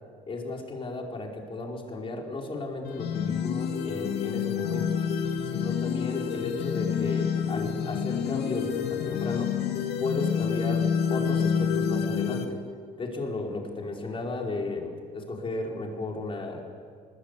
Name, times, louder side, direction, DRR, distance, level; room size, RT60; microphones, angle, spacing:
voice 1, 0.3-5.1 5.4-9.6 10.0-12.6 13.0-16.6, left 3 dB, 30° left, 1 dB, 5.1 m, -34 dB
sound 1, 2.8-12.4, left 7 dB, 75° left, 2.4 m, -28 dB
24.5 x 22.5 x 8.4 m, 2.1 s
cardioid pair, 110°, 17 cm